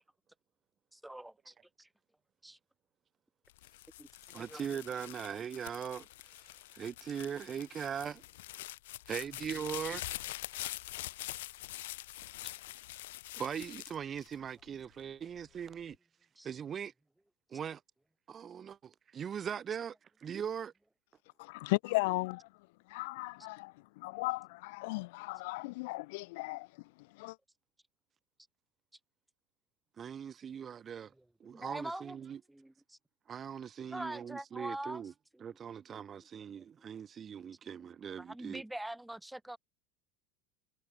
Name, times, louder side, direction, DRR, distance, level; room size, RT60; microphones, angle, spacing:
voice 1, 0.9-1.9 2.4-2.6 4.0-4.6 12.4-12.5 16.4-16.5 30.6-30.8 31.2-32.2 32.5-33.0 33.9-35.6 35.9-37.0 37.8-37.9 38.2-39.6, right 1 dB, 5° right, 7.0 m, -45 dB
sound 1, 3.5-14.9 15.4-16.0, left 17 dB, 90° left, 5.0 m, -45 dB
voice 2, 4.3-6.1 6.3-8.2 9.1-10.1 13.4-16.0 16.4-16.9 17.5-17.8 18.3-20.0 20.2-20.7 30.0-31.1 31.4-32.4 33.3-35.1 35.4-38.6, right 8 dB, 25° right, 3.9 m, -40 dB
voice 3, 21.4-22.5 22.9-26.7 27.2-27.4, left 24 dB, 70° left, 2.3 m, -36 dB
supercardioid pair, 155°, 0 cm